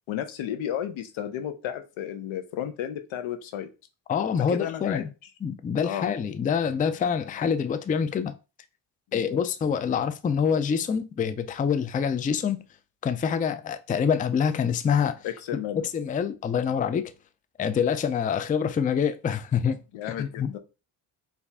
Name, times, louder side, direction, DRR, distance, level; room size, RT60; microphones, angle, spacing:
voice 1, 0.1-3.7 4.5-5.0 5.8-6.1 9.1-9.4 15.2-15.9 19.9-20.6, left 10 dB, 85° left, 0.8 m, -33 dB
voice 2, 4.1-5.1 5.4-8.3 9.1-12.6 13.0-15.3 15.9-17.1 17.6-19.8 20.2-20.6, left 7 dB, 20° left, 0.3 m, -26 dB
4.6 x 2.6 x 3.3 m
cardioid pair, 70°, 47 cm